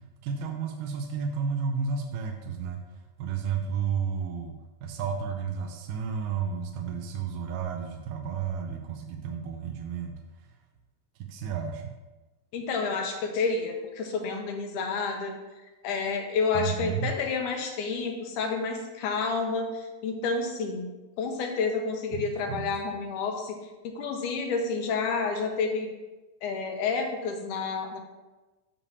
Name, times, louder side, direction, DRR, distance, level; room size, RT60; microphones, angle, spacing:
voice 1, 0.2-2.8 3.2-10.1 10.4-10.5 11.2-11.9 16.6-17.1 22.1-22.7, right 6 dB, 80° right, 4 dB, 2.0 m, -32 dB
voice 2, 12.5-15.4 15.8-20.9 21.2-23.6 23.8-25.9 26.4-28.0, left 4 dB, 80° left, 3 dB, 1.9 m, -29 dB
10.0 x 7.0 x 2.8 m, 1.2 s
omnidirectional pair, 4.2 m